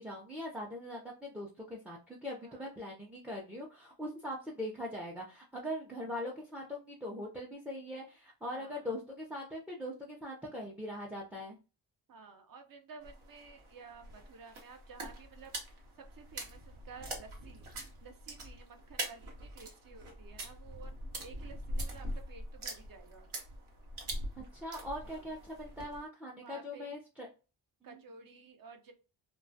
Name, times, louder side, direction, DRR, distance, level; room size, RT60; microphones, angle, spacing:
voice 1, 0.0-11.6 24.5-27.3 27.8-28.0, left 1 dB, 5° right, -2 dB, 0.4 m, -41 dB
voice 2, 2.4-2.7 8.4-8.9 12.1-17.7 18.0-23.3 25.0-25.3 26.4-27.0 27.8-28.9, right 5 dB, 45° right, 6 dB, 0.6 m, -53 dB
sound 1, 13.0-26.0, right 1 dB, 75° right, 0.9 m, -43 dB
2.2 x 2.1 x 2.6 m, 0.33 s
cardioid pair, 65°, 49 cm